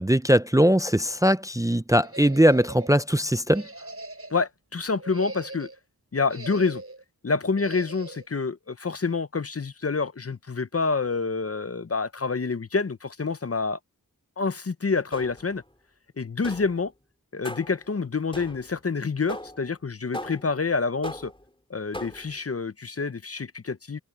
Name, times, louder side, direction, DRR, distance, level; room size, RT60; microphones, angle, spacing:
voice 1, 0.0-3.6, equal, 10° right, 0.5 m, -20 dB
sound 1, 2.0-2.9 3.5-4.5 4.9-5.8 6.3-7.0 7.6-8.3, right 2 dB, 40° right, 6.9 m, -41 dB
voice 2, 4.3-5.7 6.1-6.8 7.2-13.8 14.4-15.6 16.2-16.9 17.3-21.3 21.7-24.0, left 4 dB, 40° left, 0.7 m, -27 dB
sound 2, 15.1-15.6 16.4-16.9 17.4-17.9 18.3-18.8 19.3-19.7 20.1-20.6 21.0-21.5 21.9-22.4, left 1 dB, 15° left, 3.5 m, -38 dB
wide cardioid pair, 45°, 35 cm